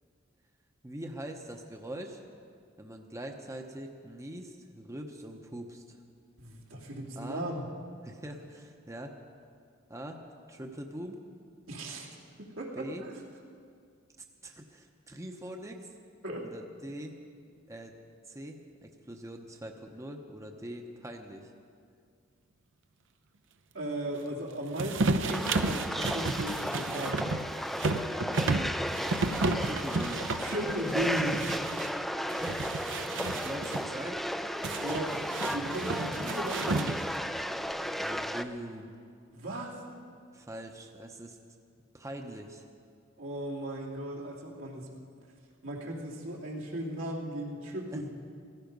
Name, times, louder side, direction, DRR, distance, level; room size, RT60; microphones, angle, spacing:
voice 1, 0.8-2.2 2.8-6.0 7.2-7.5 8.0-9.1 9.9-10.2 10.5-11.2 12.7-13.0 14.4-15.9 16.4-17.1 17.7-17.9 18.3-21.5 29.6-30.2 32.4-33.0 33.4-34.2 37.9-38.9 40.3-41.4 41.9-42.7 47.9-48.0, right 1 dB, 15° right, 3 dB, 0.8 m, -42 dB
voice 2, 6.4-7.7 11.7-12.1 12.4-13.2 16.2-16.4 23.7-27.2 30.4-31.5 34.8-37.0 39.3-39.8 43.2-44.9 45.6-48.1, right 1 dB, 85° right, -3 dB, 2.6 m, -36 dB
sound 1, 24.8-31.9 32.3-33.9 34.6-37.2, right 3 dB, 65° right, 0.7 m, -32 dB
sound 2, 25.3-38.4, equal, ahead, 0.4 m, -34 dB
15.5 x 15.0 x 5.3 m, 2.2 s
head